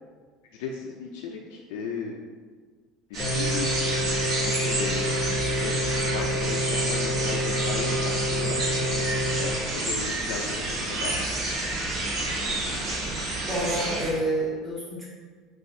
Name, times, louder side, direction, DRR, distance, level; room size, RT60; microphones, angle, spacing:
voice 1, 0.5-2.2 3.1-3.7 4.4-5.1 5.6-11.2, left 5 dB, 85° left, -1 dB, 0.4 m, -36 dB
sound 1, 3.1-14.1, right 2 dB, 40° right, 1.3 m, -29 dB
sound 2, 3.2-9.5, equal, 30° left, 0.8 m, -29 dB
voice 2, 13.5-15.1, right 1 dB, 10° right, -8 dB, 1.4 m, -28 dB
5.6 x 2.5 x 2.6 m, 1.5 s
cardioid pair, 145°, 0 cm